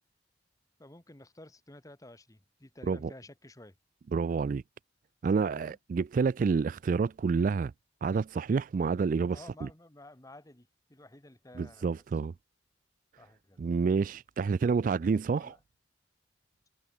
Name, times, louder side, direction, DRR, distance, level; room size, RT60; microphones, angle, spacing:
voice 1, 0.8-3.7 5.3-5.8 9.3-11.9 13.2-13.6 14.6-14.7 15.4-15.6, left 1 dB, 20° left, 1.5 m, -52 dB
voice 2, 4.1-4.6 5.2-7.7 8.0-9.7 11.6-12.3 13.6-15.6, right 5 dB, 45° right, 0.3 m, -28 dB
head